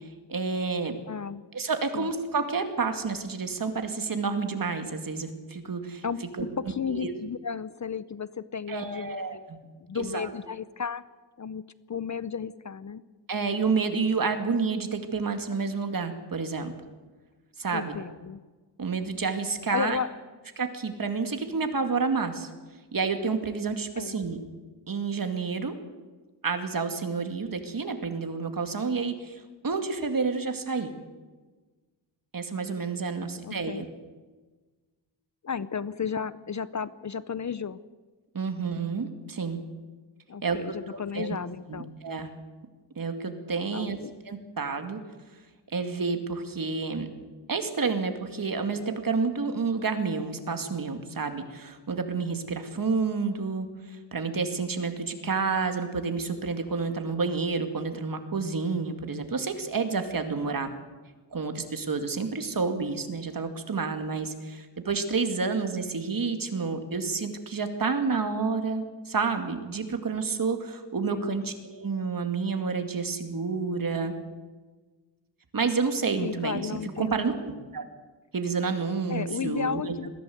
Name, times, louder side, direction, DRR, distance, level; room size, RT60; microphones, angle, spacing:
voice 1, 0.3-0.9 1.5-6.0 6.9-7.1 8.7-9.4 9.9-10.3 13.3-16.7 17.6-18.0 18.8-20.0 20.6-22.5 22.9-24.4 24.9-25.7 26.4-30.9 32.3-33.9 38.3-39.6 40.4-40.6 40.9-41.4 41.7-42.3 43.0-44.0 44.3-45.0 45.7-47.1 47.5-60.7 61.3-74.1 75.5-76.6 77.0-77.8 78.3-79.9, right 4 dB, 50° right, 7 dB, 2.4 m, -29 dB
voice 2, 1.1-1.5 1.9-2.1 6.0-6.2 6.6-9.5 9.8-11.0 11.4-13.0 17.7-18.4 19.7-20.1 24.0-24.2 33.2-33.8 35.4-37.8 40.3-41.9 43.7-44.1 71.1-71.4 76.2-77.3 79.1-80.1, left 6 dB, 40° left, 16 dB, 0.6 m, -34 dB
21.5 x 15.5 x 7.9 m, 1.3 s
wide cardioid pair, 110°, 44 cm